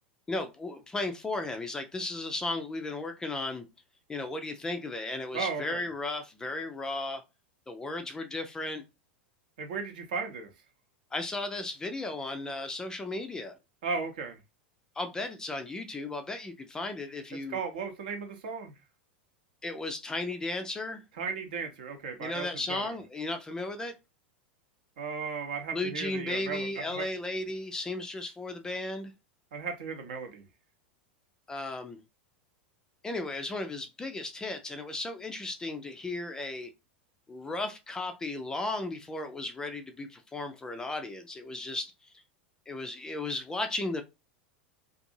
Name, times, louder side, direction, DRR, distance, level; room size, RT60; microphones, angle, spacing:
voice 1, 0.3-3.6 4.1-7.2 7.7-8.8 11.1-13.6 15.0-17.6 19.6-21.0 22.2-23.9 25.7-29.1 31.5-32.0 33.0-36.7 37.3-42.1 42.7-44.0, left 2 dB, 10° left, 0.4 m, -35 dB
voice 2, 5.3-5.8 9.6-10.5 13.8-14.4 17.5-18.7 21.2-22.9 25.0-27.1 29.5-30.4, right 5 dB, 55° right, 0.7 m, -35 dB
2.6 x 2.5 x 2.6 m
figure-of-eight pair, 85°, 6 cm